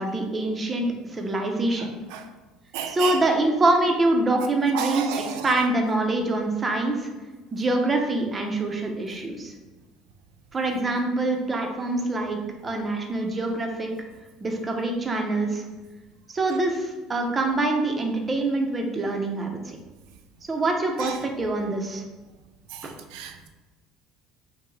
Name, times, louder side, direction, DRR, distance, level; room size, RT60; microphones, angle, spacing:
voice 1, 0.0-1.9 2.9-7.1 7.5-9.5 10.5-13.9 14.4-15.6 16.3-19.8 20.5-22.0 22.8-22.9, right 2 dB, 15° right, 2 dB, 0.5 m, -25 dB
voice 2, 2.7-3.2 4.7-5.5 21.0-21.2 22.7-23.5, right 7 dB, 80° right, 6 dB, 0.5 m, -32 dB
5.5 x 2.0 x 3.9 m, 1.2 s
cardioid pair, 170°, 0 cm